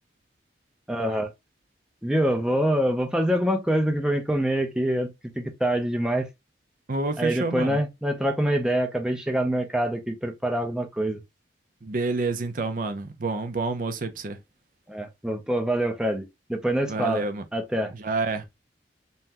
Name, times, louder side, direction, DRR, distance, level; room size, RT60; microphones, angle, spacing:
voice 1, 0.9-1.3 2.0-5.1 5.4-6.3 7.2-11.2 14.9-17.3 17.5-17.9, right 1 dB, 5° right, 0.6 m, -25 dB
voice 2, 6.9-7.8 11.8-14.4 16.9-17.4 18.0-18.5, right 3 dB, 50° right, 0.6 m, -28 dB
5.5 x 2.2 x 2.9 m
head